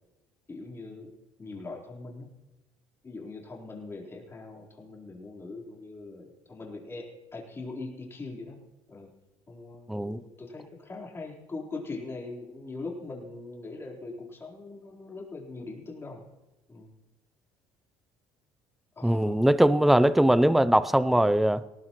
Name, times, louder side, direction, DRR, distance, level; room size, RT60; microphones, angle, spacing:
voice 1, 0.5-1.1 1.4-2.3 3.0-8.6 8.9-9.1 9.5-16.2 16.7-16.9 19.0-19.5, left 3 dB, 25° left, 4.1 m, -41 dB
voice 2, 9.9-10.2 19.0-21.6, right 1 dB, ahead, 0.5 m, -21 dB
19.5 x 19.0 x 3.1 m
supercardioid pair, 105°, 10 cm